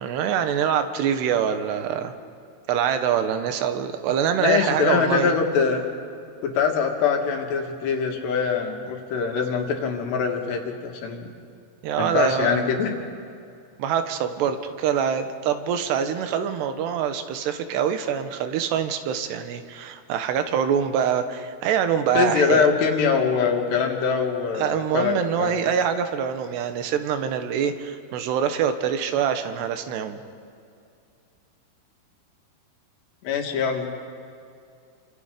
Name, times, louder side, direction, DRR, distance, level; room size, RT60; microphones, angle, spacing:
voice 1, 0.0-2.1 2.7-5.4 11.8-12.7 13.8-22.7 24.5-30.2, right 8 dB, 90° right, 8 dB, 3.3 m, -24 dB
voice 2, 4.4-5.8 6.4-11.3 12.0-12.9 22.1-25.6 33.2-34.2, left 6 dB, 85° left, 2 dB, 4.2 m, -23 dB
29.0 x 26.0 x 5.2 m, 2.4 s
omnidirectional pair, 4.7 m